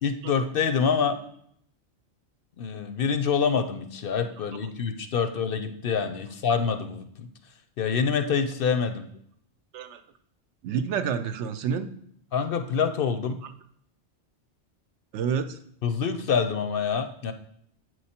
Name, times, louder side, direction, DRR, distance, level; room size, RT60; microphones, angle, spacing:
voice 1, 0.0-1.2 2.6-7.3 7.8-9.1 12.3-13.4 15.8-17.3, left 6 dB, 60° left, 8 dB, 0.7 m, -26 dB
voice 2, 10.6-11.9 15.1-15.6, right 7 dB, 75° right, 10 dB, 0.9 m, -28 dB
8.1 x 4.6 x 4.3 m, 0.69 s
omnidirectional pair, 1.2 m